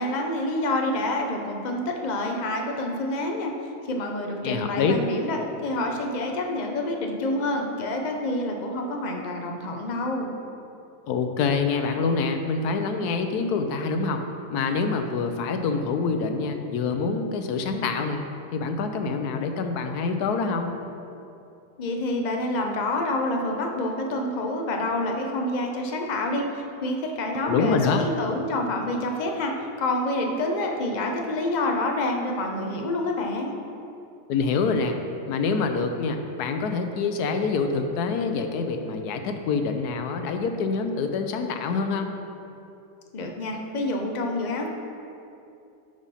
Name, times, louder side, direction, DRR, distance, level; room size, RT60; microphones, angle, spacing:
voice 1, 0.0-3.5 3.9-10.3 21.8-33.6 43.1-44.7, left 1 dB, 40° left, 2 dB, 0.6 m, -27 dB
voice 2, 4.4-5.0 11.1-14.2 14.5-18.2 18.5-20.7 27.4-28.0 34.3-35.0 35.2-42.1, left 4 dB, 75° left, 6 dB, 1.2 m, -26 dB
11.5 x 5.0 x 4.2 m, 2.7 s
omnidirectional pair, 1.7 m